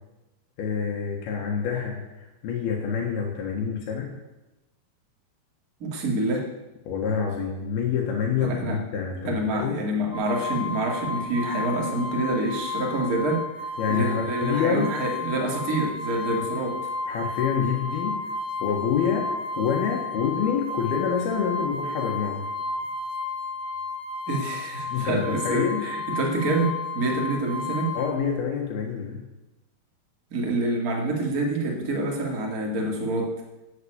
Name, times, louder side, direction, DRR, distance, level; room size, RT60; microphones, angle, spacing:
voice 1, 0.6-4.1 6.9-9.8 13.8-14.9 16.3-16.4 17.1-18.2 18.6-19.3 19.6-22.5 24.9-25.8 27.9-29.2, left 7 dB, 70° left, 0 dB, 3.4 m, -27 dB
voice 2, 5.8-6.5 8.4-8.8 9.2-13.4 13.9-16.8 24.3-28.0 30.3-33.3, right 2 dB, 30° right, 0 dB, 2.1 m, -27 dB
sound 1, 10.1-28.1, left 3 dB, 15° left, 3.0 m, -32 dB
12.0 x 7.9 x 8.7 m, 1.0 s
omnidirectional pair, 4.7 m